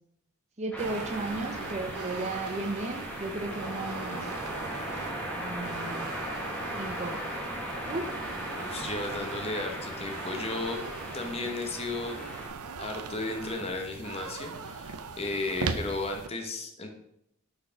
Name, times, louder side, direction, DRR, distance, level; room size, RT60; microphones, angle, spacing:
voice 1, 0.6-4.3 5.3-6.2 6.7-7.2 7.9-8.1, right 2 dB, 30° right, 4 dB, 0.6 m, -35 dB
sound 1, 0.7-12.5, right 1 dB, 5° left, 1.1 m, -37 dB
sound 2, 0.8-16.3, right 4 dB, 85° right, 0.6 m, -40 dB
voice 2, 8.5-10.8 11.1-12.2 12.8-16.9, left 2 dB, 25° left, 4 dB, 0.9 m, -34 dB
6.3 x 4.3 x 5.6 m, 0.77 s
head